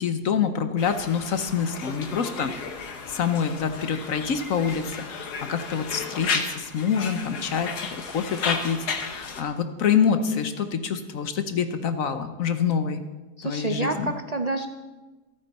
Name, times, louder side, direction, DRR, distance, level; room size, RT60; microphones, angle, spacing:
voice 1, 0.0-2.5 3.1-7.7 8.1-13.0 13.4-14.1, left 7 dB, 60° left, 9 dB, 1.2 m, -26 dB
Conversation, 0.8-9.4, left 5 dB, 80° left, 1.8 m, -33 dB
voice 2, 13.4-14.7, right 2 dB, 75° right, 6 dB, 0.3 m, -28 dB
26.5 x 9.0 x 4.2 m, 1.2 s
omnidirectional pair, 1.7 m